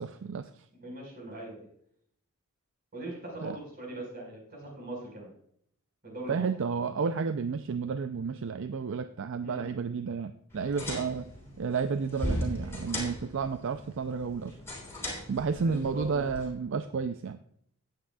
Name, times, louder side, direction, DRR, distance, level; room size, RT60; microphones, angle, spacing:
voice 1, 0.0-0.7 3.4-3.6 6.3-11.3 11.6-14.6 15.3-17.4, right 5 dB, 60° right, 10 dB, 0.4 m, -31 dB
voice 2, 0.8-1.6 2.9-5.3 6.0-6.4 9.4-9.7 15.6-16.2, right 1 dB, 45° right, -1 dB, 4.6 m, -41 dB
sound 1, 10.5-16.5, equal, 10° left, 3.2 m, -38 dB
16.5 x 8.8 x 2.3 m, 0.66 s
head